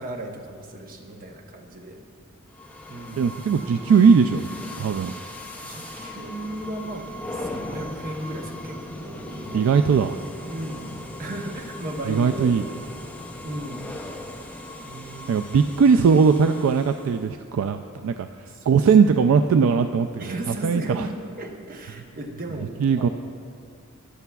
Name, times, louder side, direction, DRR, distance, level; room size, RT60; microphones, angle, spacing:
voice 1, 0.0-2.0 2.9-3.4 5.6-9.7 10.5-12.6 13.4-13.9 14.8-15.7 18.5-18.8 20.2-23.1, right 1 dB, 40° right, 2 dB, 0.9 m, -36 dB
sound 1, 2.5-17.3, left 1 dB, 5° left, 0.6 m, -38 dB
voice 2, 3.2-5.1 9.5-10.2 12.1-12.7 15.3-18.3 18.7-21.1 22.8-23.1, right 6 dB, 70° right, 7 dB, 0.3 m, -19 dB
14.0 x 10.5 x 2.3 m, 2.2 s
head